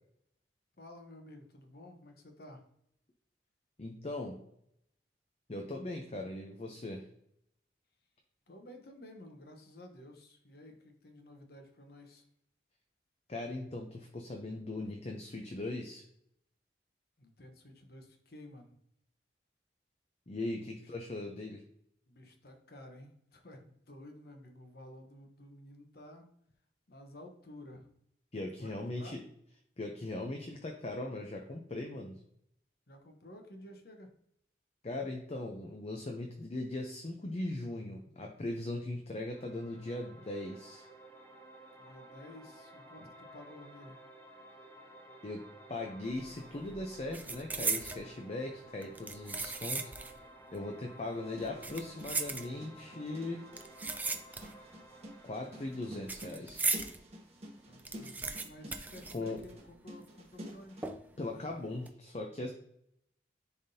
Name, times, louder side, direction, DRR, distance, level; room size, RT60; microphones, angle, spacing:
voice 1, 0.8-2.6 8.5-12.2 17.2-18.8 22.1-26.3 26.9-27.9 28.6-29.2 32.9-34.1 41.8-44.0 57.6-60.9, left 1 dB, 60° left, 4 dB, 1.0 m, -52 dB
voice 2, 3.8-4.4 5.5-7.1 13.3-16.0 20.3-21.6 28.3-29.2 29.8-32.2 34.8-40.9 45.2-45.4 45.7-50.2 50.5-53.4 55.2-56.7 59.1-59.4 61.2-62.5, left 2 dB, 35° left, 2 dB, 0.6 m, -39 dB
sound 1, 39.3-56.3, right 1 dB, 15° left, 1.1 m, -55 dB
sound 2, 46.1-46.4 46.6-48.1 48.8-50.2 50.5-50.6 51.4-52.9 53.5-54.7 55.0-57.0 57.4-57.5 57.7-59.8 60.0-60.1 60.8-61.3 61.7-61.9, right 3 dB, 10° right, 0.4 m, -37 dB
sound 3, 51.1-60.9, equal, 35° right, 1.3 m, -50 dB
10.5 x 3.6 x 2.8 m, 0.72 s
head